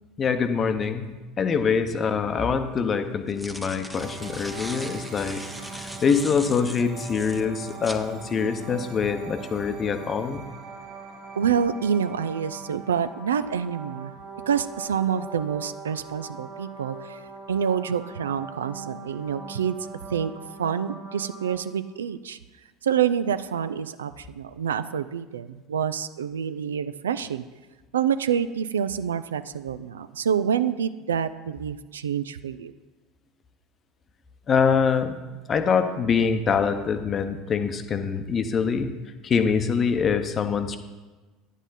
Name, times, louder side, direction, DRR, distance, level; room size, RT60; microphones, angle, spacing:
voice 1, 0.2-1.1 1.4-5.4 5.8-10.4 34.5-35.2 35.5-38.9 39.2-40.8, left 6 dB, 35° left, 9 dB, 0.8 m, -24 dB
sound 1, 3.1-8.1, equal, ahead, 0.7 m, -40 dB
sound 2, 3.9-21.6, right 4 dB, 55° right, 1.3 m, -41 dB
voice 2, 11.4-14.1 14.5-17.2 17.5-19.8 20.1-20.3 20.6-22.4 22.8-27.4 27.9-32.7, right 8 dB, 75° right, 13 dB, 0.3 m, -27 dB
10.0 x 8.0 x 4.0 m, 1.2 s
figure-of-eight pair, 70°, 0 cm